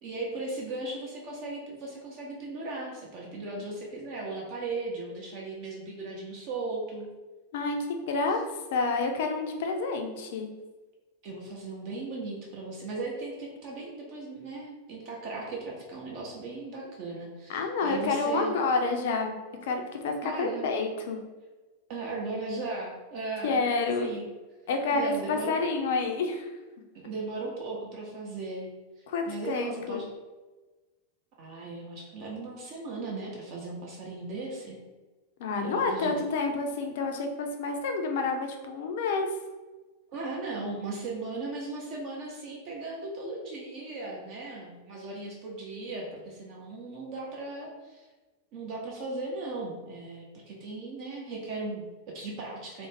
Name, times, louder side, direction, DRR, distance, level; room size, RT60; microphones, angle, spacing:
voice 1, 0.0-7.1 11.2-18.5 20.2-20.7 21.9-23.6 24.0-24.3 24.9-25.6 27.0-28.7 29.0-30.1 31.4-34.8 35.6-36.3 40.1-48.1 48.5-52.9, right 3 dB, 45° right, -2 dB, 0.6 m, -37 dB
voice 2, 8.1-8.4 8.7-10.5 17.5-19.4 19.6-21.2 23.4-24.1 24.7-26.5 29.1-30.0 35.4-39.3, left 3 dB, 55° left, 4 dB, 0.4 m, -29 dB
2.4 x 2.1 x 3.2 m, 1.2 s
figure-of-eight pair, 90°, 0 cm